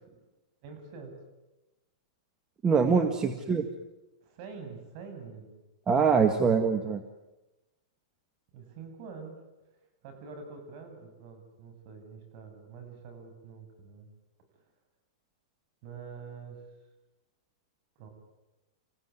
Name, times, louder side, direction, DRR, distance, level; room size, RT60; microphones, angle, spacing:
voice 1, 0.6-1.1 2.9-3.2 4.2-5.6 8.5-9.4 10.0-14.1 15.8-16.6 18.0-18.1, right 5 dB, 50° right, 6 dB, 7.9 m, -46 dB
voice 2, 2.6-3.7 5.9-7.0, right 5 dB, 20° right, 7 dB, 1.8 m, -24 dB
29.0 x 16.0 x 9.7 m, 1.0 s
hypercardioid pair, 130°, 3 cm